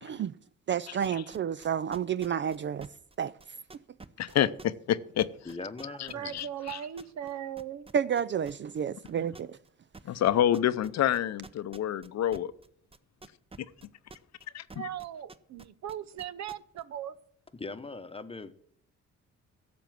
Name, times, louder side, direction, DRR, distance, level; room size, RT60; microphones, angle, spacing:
voice 1, 0.0-0.3 0.7-2.9 3.2-3.3 7.9-9.6, right 8 dB, 40° right, 0.4 m, -30 dB
sound 1, 1.0-7.3 7.6-8.8 9.0-9.7 9.9-14.4 14.7-16.8, right 3 dB, 20° right, 0.8 m, -49 dB
voice 2, 4.2-5.3 6.3-6.8 10.1-12.5 14.5-14.9, left 11 dB, 60° left, 0.7 m, -27 dB
voice 3, 5.4-6.5 17.5-18.5, left 3 dB, 20° left, 1.0 m, -41 dB
voice 4, 6.1-7.9 14.7-17.2, right 10 dB, 65° right, 0.8 m, -38 dB
12.0 x 6.9 x 7.6 m
cardioid pair, 90°, 30 cm